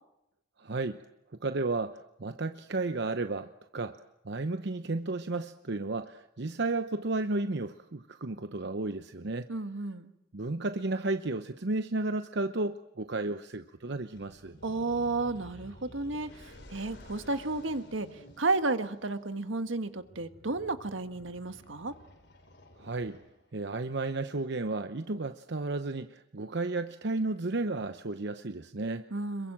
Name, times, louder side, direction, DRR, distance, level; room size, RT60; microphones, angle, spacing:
voice 1, 0.6-1.0 1.4-4.0 4.2-9.5 10.3-14.6 22.8-23.2 23.5-29.1, right 2 dB, 60° right, 9 dB, 0.9 m, -33 dB
voice 2, 9.5-10.1 14.6-18.1 18.4-21.9 29.1-29.5, right 3 dB, 80° right, 9 dB, 1.6 m, -32 dB
sound 1, 14.1-23.6, left 1 dB, 65° left, 4.8 m, -53 dB
27.0 x 23.0 x 7.6 m, 0.85 s
head